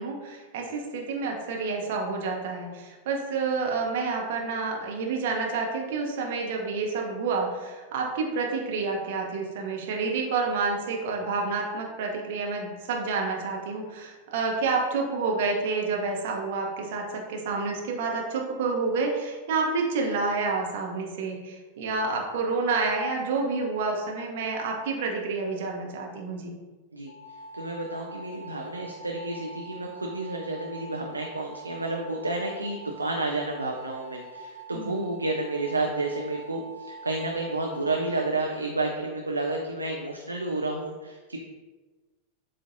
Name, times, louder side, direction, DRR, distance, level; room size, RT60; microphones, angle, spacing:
voice 1, 0.0-26.5 34.7-35.0, right 4 dB, 55° right, 0 dB, 0.8 m, -29 dB
sound 1, 27.1-38.3, right 3 dB, 65° left, 0.5 m, -44 dB
voice 2, 27.5-41.4, right 2 dB, 80° right, 1 dB, 0.4 m, -31 dB
7.4 x 2.5 x 2.6 m, 1.3 s
figure-of-eight pair, 90°, 0 cm